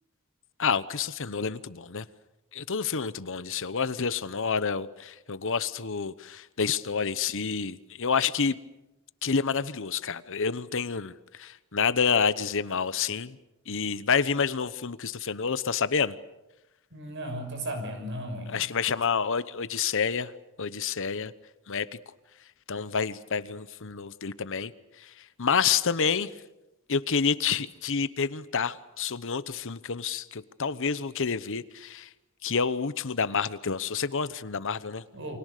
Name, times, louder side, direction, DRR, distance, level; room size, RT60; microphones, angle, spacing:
voice 1, 0.6-2.0 2.5-8.6 9.2-13.4 13.7-16.1 18.5-20.3 20.6-21.3 21.7-21.9 22.7-24.7 25.4-26.3 26.9-32.1 32.4-35.0, left 6 dB, 65° left, 15 dB, 1.0 m, -28 dB
voice 2, 16.9-18.6 35.1-35.4, right 1 dB, 60° right, 7 dB, 6.3 m, -35 dB
29.5 x 25.0 x 6.7 m, 0.94 s
head